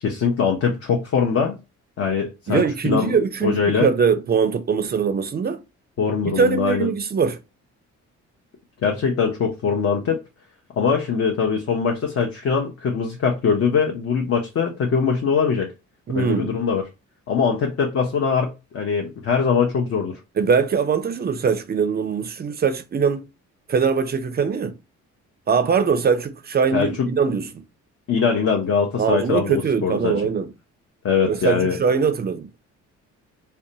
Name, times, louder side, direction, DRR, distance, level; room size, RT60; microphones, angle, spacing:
voice 1, 0.0-1.6 2.0-3.2 3.4-3.9 6.0-6.9 8.8-10.2 10.8-15.7 16.1-16.8 17.3-20.2 26.7-26.9 28.1-30.2 31.0-31.8, left 6 dB, 50° left, 0.6 m, -22 dB
voice 2, 2.5-5.6 6.4-7.4 16.1-16.5 20.4-23.2 23.7-24.8 25.5-27.6 29.0-30.5 31.3-32.5, right 6 dB, 35° right, 0.4 m, -21 dB
2.6 x 2.1 x 2.6 m
cardioid pair, 90°, 30 cm